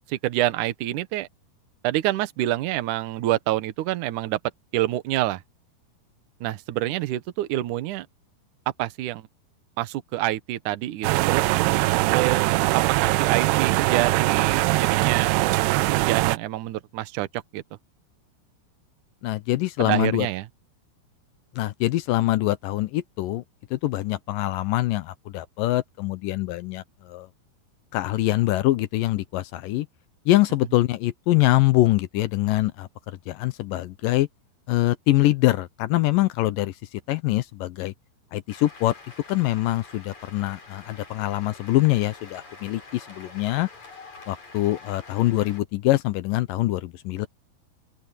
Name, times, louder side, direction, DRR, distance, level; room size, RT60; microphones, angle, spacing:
voice 1, 0.1-1.3 1.8-4.4 4.7-5.4 6.4-8.1 8.8-9.2 9.8-11.5 12.1-15.6 16.0-17.6 19.8-20.5, right 15 dB, 65° right, 2.2 m, -27 dB
sound 1, 11.0-16.4, right 19 dB, 90° right, 2.6 m, -21 dB
voice 2, 19.2-20.3 21.6-23.4 23.7-27.3 27.9-29.9 30.3-32.9 33.3-34.3 34.7-37.9 38.3-38.9 39.3-43.7 44.3-47.3, left 16 dB, 75° left, 2.1 m, -24 dB
Cheering / Applause, 38.5-45.6, left 3 dB, 45° left, 7.7 m, -46 dB
open air
omnidirectional pair, 4.6 m